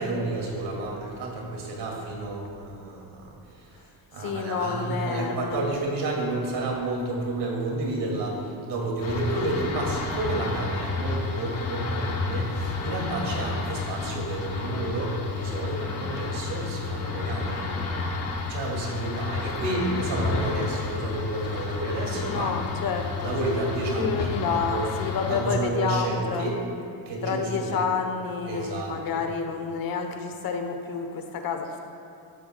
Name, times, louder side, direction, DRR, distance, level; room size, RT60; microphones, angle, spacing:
voice 1, 0.0-17.7 18.5-22.5 23.2-24.9 25.3-26.6 27.0-27.9 28.5-29.2, right 2 dB, 90° right, -1 dB, 2.6 m, -30 dB
voice 2, 4.2-5.7 22.2-23.3 23.9-26.5 27.2-31.8, left 6 dB, 60° left, 5 dB, 1.1 m, -29 dB
sound 1, 9.0-25.5, left 4 dB, 40° left, 0.9 m, -31 dB
13.5 x 12.0 x 2.3 m, 2.7 s
cardioid pair, 170°, 39 cm